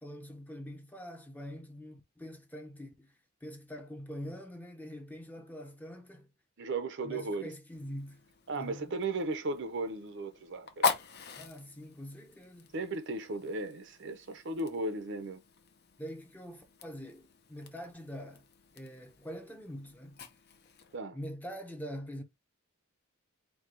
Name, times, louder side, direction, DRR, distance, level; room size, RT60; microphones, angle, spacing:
voice 1, 0.0-3.2 3.4-6.3 7.0-8.2 8.5-9.0 11.3-12.7 16.0-18.4 18.7-20.2 21.1-22.2, equal, 10° left, 0.7 m, -44 dB
voice 2, 6.6-7.5 8.5-10.9 12.7-15.4 20.9-21.2, right 2 dB, 55° right, 0.7 m, -36 dB
Fire, 7.7-21.0, left 4 dB, 50° left, 0.7 m, -41 dB
4.7 x 2.2 x 3.8 m
head